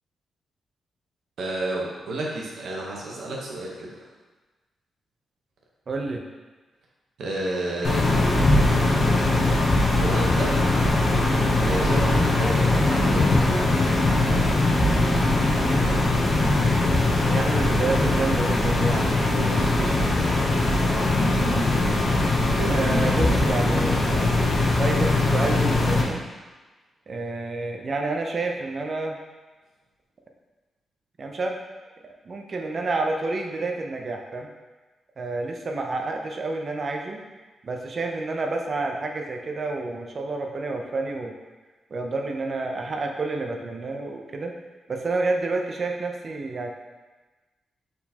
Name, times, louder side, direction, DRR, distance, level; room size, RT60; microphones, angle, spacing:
voice 1, 1.4-4.1 7.2-8.1 9.9-10.6 11.6-14.0 19.3-20.1 22.6-22.8, right 2 dB, 80° right, -3 dB, 0.9 m, -31 dB
voice 2, 5.9-6.2 16.3-19.1 22.7-24.3 24.8-26.2 27.1-29.2 31.2-31.6 32.3-34.5 35.2-37.2 37.6-41.3 41.9-44.5 44.9-46.7, right 3 dB, 45° right, 2 dB, 0.4 m, -29 dB
sound 1, 7.8-26.0, left 2 dB, 45° left, 0.7 m, -21 dB
4.3 x 3.9 x 2.8 m, 1.3 s
cardioid pair, 120°, 0 cm